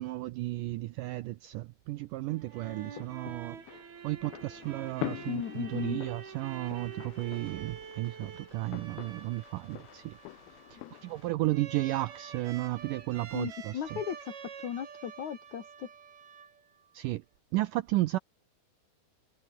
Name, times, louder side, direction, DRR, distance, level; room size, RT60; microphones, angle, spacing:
voice 1, 0.0-3.6 4.0-10.2 10.7-14.0 16.9-17.2 17.5-18.2, right 17 dB, 90° right, 1.9 m, -33 dB
sound 1, 2.3-16.9, right 7 dB, 70° right, 5.6 m, -47 dB
sound 2, 2.5-11.3, left 20 dB, 80° left, 2.3 m, -45 dB
voice 2, 5.3-6.0 10.8-11.0 13.3-14.3 14.6-15.9, left 9 dB, 55° left, 2.8 m, -36 dB
omnidirectional pair, 4.5 m